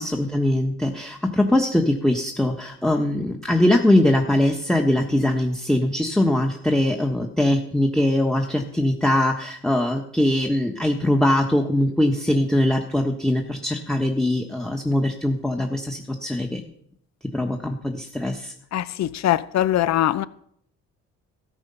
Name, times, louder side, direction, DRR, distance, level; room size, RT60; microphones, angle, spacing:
voice 1, 0.0-16.6 17.3-18.5, left 1 dB, ahead, 3 dB, 1.3 m, -22 dB
voice 2, 18.7-20.3, left 12 dB, 60° left, 16 dB, 0.8 m, -22 dB
13.5 x 8.1 x 5.6 m, 0.66 s
cardioid pair, 90°, 30 cm